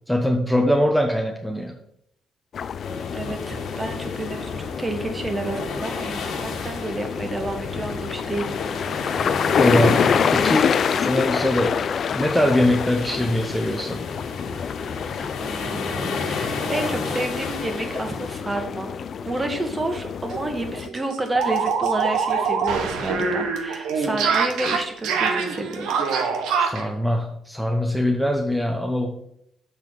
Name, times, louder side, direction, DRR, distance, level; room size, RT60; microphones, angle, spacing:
voice 1, 0.1-1.8 9.6-11.8 12.1-14.1 26.6-29.3, left 1 dB, ahead, 2 dB, 0.8 m, -22 dB
sound 1, 2.5-20.9, left 7 dB, 55° left, 0.3 m, -28 dB
sound 2, 2.8-18.4, left 4 dB, 75° left, 1.4 m, -31 dB
voice 2, 3.1-8.6 15.4-26.0, right 2 dB, 25° right, 5 dB, 1.4 m, -30 dB
sound 3, 19.9-20.0 20.3-20.4 20.7-26.9, right 5 dB, 90° right, 1.0 m, -24 dB
6.8 x 3.9 x 6.2 m, 0.75 s
cardioid pair, 90°, 0 cm